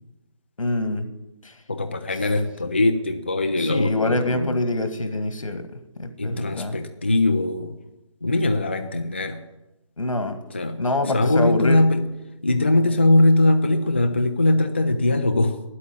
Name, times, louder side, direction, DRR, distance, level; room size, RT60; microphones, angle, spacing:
voice 1, 0.6-1.1 1.4-1.6 3.7-6.8 10.0-10.4 10.8-11.8, left 2 dB, 85° left, 8 dB, 1.9 m, -25 dB
voice 2, 1.7-4.5 6.2-7.8 8.2-9.4 10.5-12.0 12.4-15.6, left 2 dB, 20° left, 6 dB, 0.4 m, -21 dB
9.7 x 8.4 x 9.5 m, 0.96 s
figure-of-eight pair, 170°, 17 cm